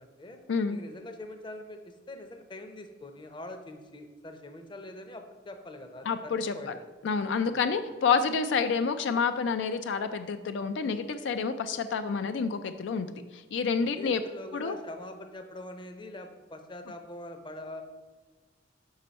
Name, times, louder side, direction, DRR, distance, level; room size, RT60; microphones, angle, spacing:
voice 1, 0.0-0.4 0.7-6.9 7.5-7.7 13.8-17.8, left 1 dB, 25° left, 7 dB, 0.6 m, -44 dB
voice 2, 6.1-6.8 7.0-13.1 13.3-14.2 14.5-14.8, left 5 dB, 75° left, 9 dB, 0.4 m, -28 dB
5.6 x 5.3 x 5.1 m, 1.3 s
head